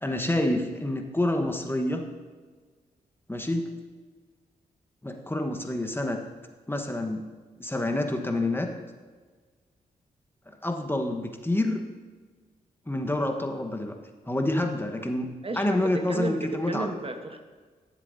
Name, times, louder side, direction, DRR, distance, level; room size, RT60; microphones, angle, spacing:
voice 1, 0.0-2.1 3.3-3.8 5.0-6.2 6.7-7.2 7.6-8.7 10.5-11.8 12.9-14.0 14.3-16.9, left 1 dB, 15° left, 4 dB, 1.1 m, -28 dB
voice 2, 15.4-17.4, right 3 dB, 35° right, 5 dB, 1.1 m, -33 dB
13.5 x 7.5 x 2.7 m, 1.4 s
supercardioid pair, 40°, 17 cm